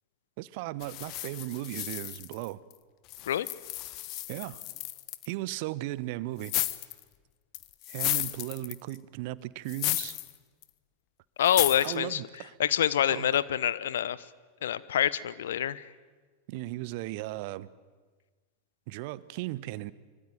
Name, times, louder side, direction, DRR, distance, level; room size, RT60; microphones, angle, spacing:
voice 1, 0.4-2.6 4.3-4.6 5.2-6.5 7.9-10.2 11.8-12.6 13.1-13.3 16.5-17.7 18.9-19.9, right 17 dB, 50° right, 19 dB, 1.0 m, -36 dB
sound 1, 0.8-2.7 3.1-5.3 6.4-7.0 7.5-9.0 9.7-10.3 10.6-10.7 11.4-11.9, left 17 dB, 40° left, 1.3 m, -33 dB
voice 2, 11.4-12.2 12.6-14.2 14.6-15.8, left 10 dB, 60° left, 18 dB, 1.0 m, -26 dB
25.0 x 24.5 x 9.3 m, 1.4 s
figure-of-eight pair, 90°, 0 cm